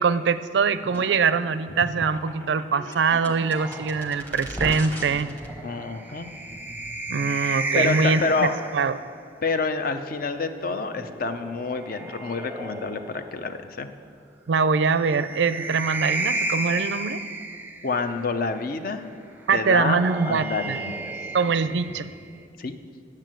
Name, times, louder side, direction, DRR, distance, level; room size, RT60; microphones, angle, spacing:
voice 1, 0.0-5.3 7.1-8.5 8.7-9.0 14.5-17.2 19.5-20.8 21.3-22.1, right 5 dB, 90° right, 13 dB, 0.4 m, -23 dB
sound 1, 0.8-7.2, equal, 10° left, 1.0 m, -39 dB
sound 2, 3.5-9.1 10.5-13.4 14.8-18.3 19.5-22.5, right 2 dB, 10° right, 0.6 m, -33 dB
voice 2, 5.6-6.3 7.7-8.5 9.4-13.9 17.8-19.0 19.5-21.1 22.6-22.8, left 4 dB, 55° left, 9 dB, 0.6 m, -28 dB
9.1 x 7.4 x 7.6 m, 2.2 s
head